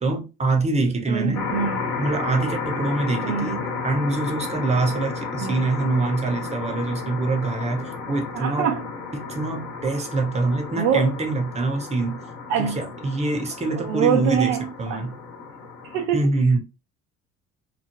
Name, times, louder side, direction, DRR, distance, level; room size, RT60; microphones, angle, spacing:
voice 1, 0.0-1.4 2.0-3.6 3.8-8.7 9.1-12.2 12.8-15.1 16.1-16.6, right 3 dB, 15° right, 0.8 m, -24 dB
voice 2, 1.1-1.8 3.2-3.6 5.4-5.7 8.3-8.9 10.8-11.1 12.5-12.9 13.7-15.1 15.9-16.3, right 8 dB, 65° right, 0.6 m, -24 dB
sound 1, 1.3-16.1, left 4 dB, 55° left, 1.1 m, -33 dB
3.1 x 2.2 x 2.5 m
figure-of-eight pair, 55°, 40 cm